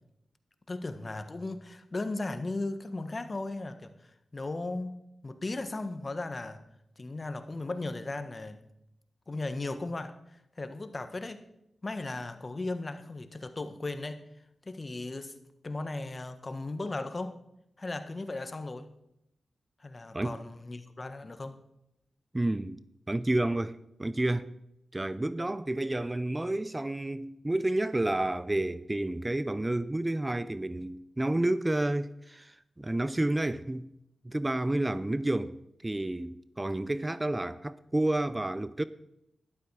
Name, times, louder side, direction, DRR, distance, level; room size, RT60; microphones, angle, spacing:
voice 1, 0.7-6.6 7.0-8.6 9.3-11.4 11.8-14.2 14.6-15.3 15.6-17.4 17.8-18.9 19.8-21.6, left 2 dB, 40° left, 1.4 m, -36 dB
voice 2, 22.3-22.8 23.1-24.5 24.9-33.9 34.2-38.8, right 1 dB, 20° right, 0.6 m, -30 dB
12.5 x 11.5 x 4.9 m
cardioid pair, 45°, 0 cm